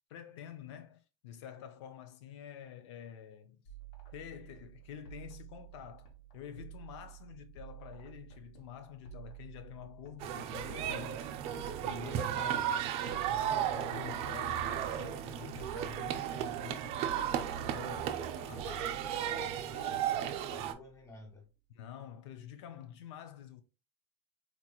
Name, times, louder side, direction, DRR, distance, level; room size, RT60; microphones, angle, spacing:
voice 1, 0.1-3.6 4.1-6.1 6.3-11.3 11.8-18.7 21.7-23.6, left 9 dB, 90° left, 0.5 m, -48 dB
sound 1, 3.7-21.3, right 11 dB, 70° left, 1.3 m, -52 dB
sound 2, 10.2-20.7, right 10 dB, 45° right, 0.4 m, -35 dB
voice 2, 18.6-21.5, left 2 dB, 20° left, 1.0 m, -51 dB
4.2 x 2.9 x 2.3 m
supercardioid pair, 155°, 14 cm